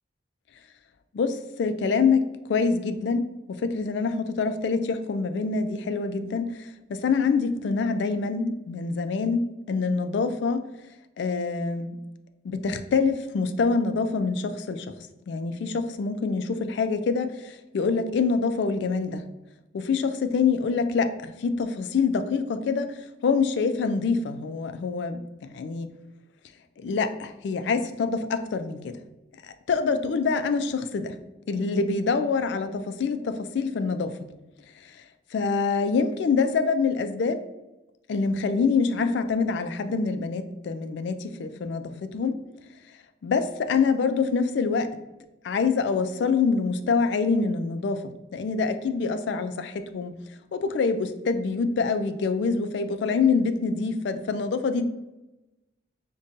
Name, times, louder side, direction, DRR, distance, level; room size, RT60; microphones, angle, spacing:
voice 1, 1.1-10.6 11.2-12.0 12.4-14.9 15.3-19.2 19.7-25.9 26.8-29.0 29.4-31.1 31.5-34.1 34.8-34.9 35.3-37.4 38.1-42.4 43.2-44.9 45.4-50.1 50.5-54.9, left 4 dB, 65° left, 9 dB, 0.3 m, -26 dB
5.2 x 2.2 x 2.5 m, 0.99 s
head